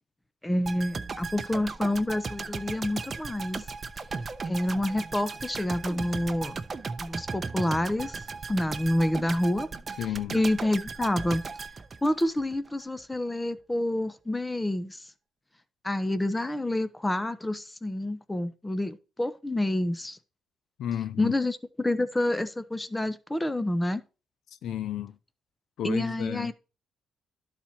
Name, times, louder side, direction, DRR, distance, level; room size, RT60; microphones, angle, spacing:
voice 1, 0.4-3.6 4.5-6.6 7.0-8.2 8.5-9.7 10.3-11.4 12.0-15.0 15.8-20.2 21.2-24.0 25.8-26.5, left 1 dB, 10° left, 0.8 m, -28 dB
sound 1, 0.6-12.7 13.0-13.1, right 4 dB, 35° right, 0.7 m, -37 dB
voice 2, 10.0-10.4 20.8-21.3 24.6-25.2 25.8-26.5, left 10 dB, 75° left, 0.5 m, -32 dB
11.5 x 4.3 x 4.4 m
cardioid pair, 90°, 0 cm